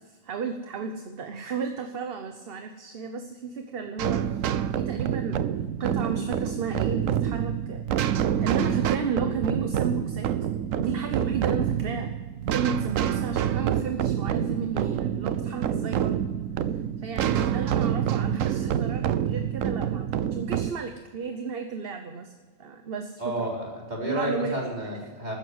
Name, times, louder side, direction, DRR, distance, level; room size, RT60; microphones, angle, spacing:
voice 1, 0.0-4.2 4.7-5.4 5.8-7.8 8.4-10.3 10.7-12.1 12.5-16.2 17.0-22.3 22.6-23.5 24.0-24.9, right 5 dB, 50° right, 6 dB, 1.1 m, -33 dB
sound 1, 4.0-20.7, right 9 dB, 90° right, 1.1 m, -27 dB
voice 2, 23.2-25.4, right 1 dB, 35° right, -3 dB, 4.0 m, -31 dB
13.5 x 9.8 x 8.0 m, 1.4 s
omnidirectional pair, 1.3 m